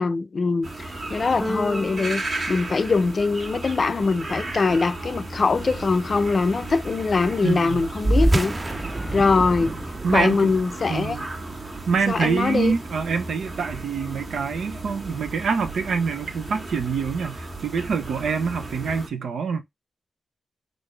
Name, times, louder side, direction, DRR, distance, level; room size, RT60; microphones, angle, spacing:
voice 1, 0.0-2.2 2.5-8.5 9.1-9.7 10.1-11.2 12.1-12.7, left 4 dB, 50° left, 0.5 m, -22 dB
sound 1, 0.6-19.1, right 2 dB, 55° right, 1.5 m, -35 dB
Keyboard (musical), 1.4-3.5, equal, 5° left, 0.7 m, -34 dB
voice 2, 7.4-7.8 10.0-10.4 10.9-11.3 11.9-19.6, right 5 dB, 80° right, 0.6 m, -25 dB
sound 2, 8.0-12.9, right 1 dB, 25° right, 0.3 m, -27 dB
3.8 x 2.6 x 3.2 m
cardioid pair, 55°, 0 cm